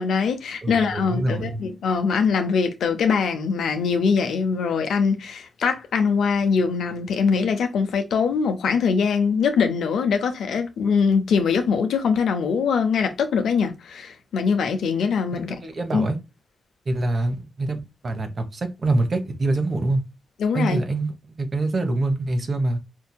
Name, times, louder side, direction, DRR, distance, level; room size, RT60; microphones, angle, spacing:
voice 1, 0.0-15.6 15.9-16.1 20.4-20.8, left 5 dB, 85° left, 0.7 m, -22 dB
voice 2, 0.6-1.6 15.3-16.2 16.9-20.0 20.5-21.1 21.4-22.8, right 2 dB, 60° right, 1.0 m, -25 dB
4.6 x 2.7 x 2.2 m
supercardioid pair, 45°, 0 cm